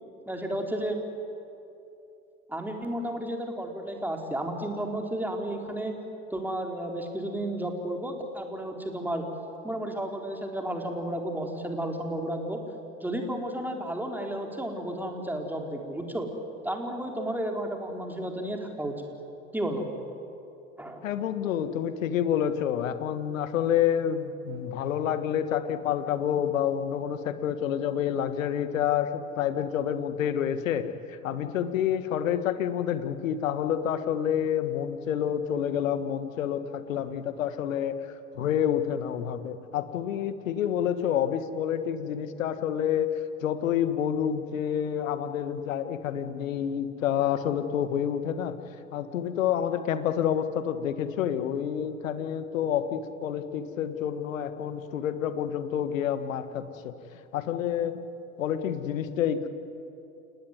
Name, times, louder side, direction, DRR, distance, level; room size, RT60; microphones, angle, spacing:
voice 1, 0.3-1.0 2.5-5.9 6.3-9.2 9.6-12.6 13.0-16.3 16.6-19.0 19.5-19.9 20.8-21.1 21.4-21.5, right 1 dB, 5° right, 2 dB, 3.9 m, -32 dB
voice 2, 21.0-37.9 38.4-43.1 43.4-48.5 48.9-56.9 57.3-58.0 58.4-59.5, left 9 dB, 65° left, 10 dB, 1.8 m, -28 dB
29.0 x 19.0 x 9.5 m, 2.7 s
figure-of-eight pair, 85°, 42 cm